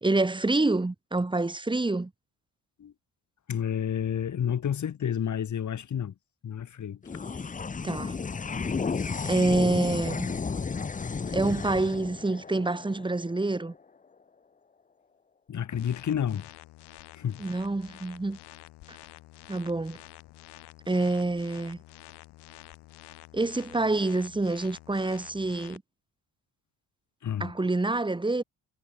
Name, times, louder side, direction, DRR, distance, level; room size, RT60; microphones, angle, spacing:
voice 1, 0.0-2.1 7.8-8.2 9.3-10.3 11.3-13.7 17.4-18.4 19.5-20.0 20.9-21.8 23.3-25.8 27.4-28.4, right 2 dB, 10° right, 1.8 m, -27 dB
voice 2, 3.5-6.1 6.4-7.0 15.5-16.5 17.1-17.4 27.2-27.6, left 9 dB, 50° left, 2.3 m, -30 dB
sound 1, 7.0-13.8, left 5 dB, 20° left, 0.8 m, -33 dB
sound 2, 15.8-25.8, left 17 dB, 90° left, 3.7 m, -49 dB
cardioid pair, 100°, 39 cm